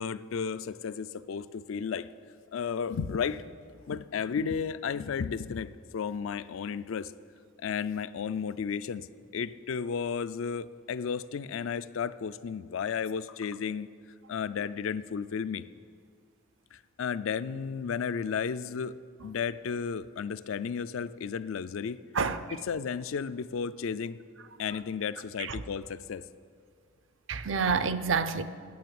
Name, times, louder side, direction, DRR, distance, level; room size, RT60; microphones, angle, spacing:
voice 1, 0.0-2.1 2.5-3.4 3.9-7.1 7.6-9.1 9.3-13.9 14.3-15.7 16.7-19.0 19.2-22.0 22.7-24.2 24.6-26.2, left 6 dB, 75° left, 0.4 m, -33 dB
voice 2, 22.1-22.5 25.4-25.6 27.3-28.4, right 5 dB, 65° right, 0.6 m, -28 dB
9.4 x 9.1 x 7.7 m
head